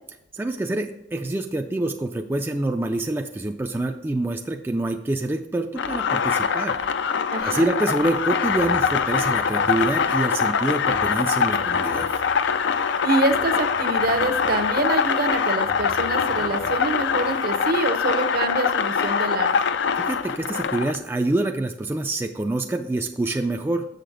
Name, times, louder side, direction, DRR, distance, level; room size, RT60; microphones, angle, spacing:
voice 1, 0.3-6.8 7.1-12.1 20.0-23.9, right 2 dB, 10° right, 4 dB, 0.3 m, -26 dB
sound 1, 5.8-21.0, left 6 dB, 70° left, 0.4 m, -23 dB
voice 2, 7.3-7.7 13.0-19.5, right 3 dB, 55° right, 7 dB, 0.7 m, -25 dB
sound 2, 8.0-8.2 8.4-17.7, left 1 dB, 85° left, 1.3 m, -42 dB
6.7 x 6.6 x 3.8 m, 0.86 s
head